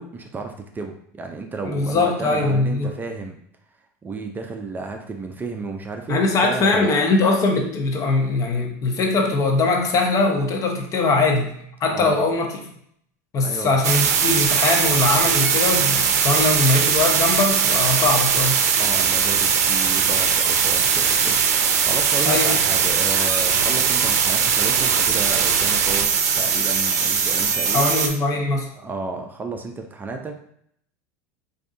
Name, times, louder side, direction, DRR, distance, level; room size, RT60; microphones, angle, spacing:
voice 1, 0.0-3.4 4.0-7.1 11.9-12.2 13.4-13.8 18.8-26.1 26.4-27.9 28.8-30.4, right 3 dB, 20° right, 4 dB, 0.5 m, -32 dB
voice 2, 1.6-2.9 6.1-11.5 11.8-12.5 13.3-18.6 22.2-22.5 27.7-28.7, left 3 dB, 40° left, 2 dB, 0.8 m, -21 dB
sound 1, 13.8-28.1, right 6 dB, 90° right, 0.5 m, -20 dB
4.6 x 2.6 x 2.6 m, 0.67 s
supercardioid pair, 100°, 9 cm